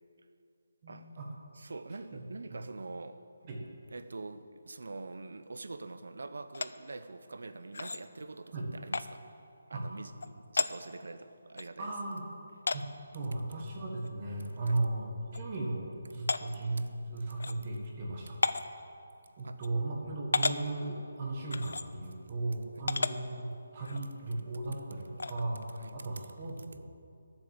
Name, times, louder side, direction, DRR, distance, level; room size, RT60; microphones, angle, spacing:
voice 1, 0.8-1.3 2.1-2.2 3.4-3.6 8.5-8.7 9.7-9.8 11.8-12.2 12.7-12.8 13.1-18.4 19.4-26.8, right 2 dB, 30° right, -1 dB, 1.6 m, -36 dB
voice 2, 1.5-3.2 3.9-9.2 9.7-11.9 14.6-14.8 16.8-16.9 19.2-19.6 20.0-20.2 22.8-22.9 25.7-26.1, right 3 dB, 75° right, 11 dB, 0.8 m, -45 dB
sound 1, 6.5-6.7 7.7-8.0 8.9-9.1 10.2-10.3 10.6-10.7 11.6-11.7 12.7-12.8 14.0-14.1 14.5-14.6 15.3-15.4 16.3-16.4 17.4-17.5 18.4-18.7 19.6-19.7 20.3-20.6 21.5-21.8 22.9-23.1 23.8-24.0 25.2-25.4, left 3 dB, 75° left, 0.5 m, -31 dB
12.5 x 7.2 x 7.4 m, 2.5 s
hypercardioid pair, 170°, 0 cm